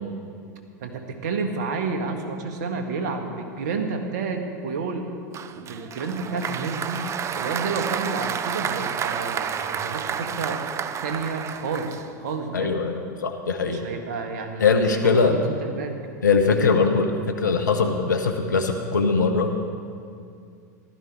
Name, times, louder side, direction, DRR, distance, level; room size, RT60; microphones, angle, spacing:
voice 1, 0.8-5.1 5.5-7.1 7.3-10.6 11.0-12.7 13.6-15.9, right 4 dB, 70° right, 4 dB, 1.7 m, -30 dB
Applause, 5.3-12.4, right 8 dB, 30° right, 0.6 m, -30 dB
voice 2, 12.5-13.8 14.6-15.4 16.2-19.5, left 4 dB, 85° left, 5 dB, 1.1 m, -21 dB
15.0 x 12.5 x 4.8 m, 2.3 s
hypercardioid pair, 90°, 10 cm